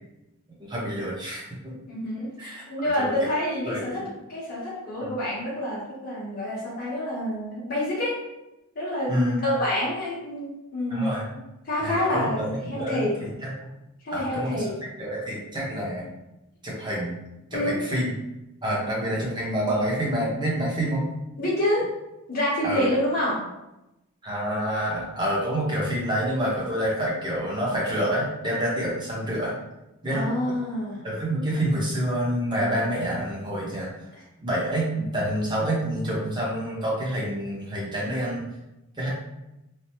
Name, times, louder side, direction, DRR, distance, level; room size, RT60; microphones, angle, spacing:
voice 1, 0.6-1.7 2.4-2.6 3.0-3.3 3.6-4.1 5.0-5.1 9.1-9.4 10.9-11.3 11.8-13.5 14.1-14.7 15.0-16.1 16.6-17.2 17.5-18.1 18.6-21.0 22.6-22.9 24.2-29.5 30.0-30.2 31.0-33.9 34.4-38.4 39.0-39.1, equal, 20° right, -5 dB, 0.7 m, -27 dB
voice 2, 1.9-8.2 8.7-13.2 14.0-14.8 17.5-17.8 21.4-21.9 22.3-23.4 30.1-31.1 34.1-34.2, left 1 dB, 40° left, -8 dB, 0.8 m, -28 dB
3.3 x 2.0 x 2.8 m, 0.94 s
head